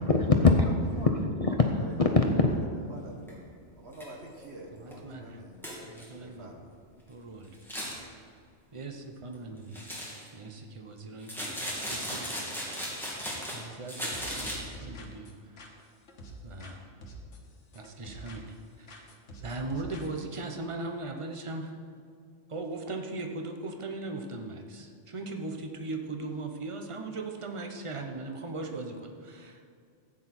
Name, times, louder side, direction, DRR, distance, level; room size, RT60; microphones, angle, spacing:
voice 1, 0.0-1.6 2.0-2.6, left 3 dB, 35° left, 2 dB, 0.7 m, -23 dB
voice 2, 2.9-3.5 3.8-5.6 6.2-6.7, right 1 dB, 60° right, 1 dB, 1.7 m, -47 dB
sound 1, 3.3-3.4 3.9-4.0 4.4-4.5 4.9-5.0 5.6-6.0 7.5-8.0 9.7-10.3 11.2-13.6 13.9-14.5, equal, ahead, 2.4 m, -36 dB
voice 3, 4.7-5.4 5.8-6.5 7.1-7.5 8.7-9.8 10.3-12.5 13.5-15.5 16.4-16.8 17.7-18.5 18.8-19.1 19.4-21.8 22.5-29.7, right 2 dB, 30° right, 4 dB, 0.9 m, -39 dB
sound 2, 14.1-16.8 17.0-18.6 18.9-20.5, equal, 70° left, 1.7 m, -47 dB
14.5 x 8.9 x 4.4 m, 2.3 s
omnidirectional pair, 1.3 m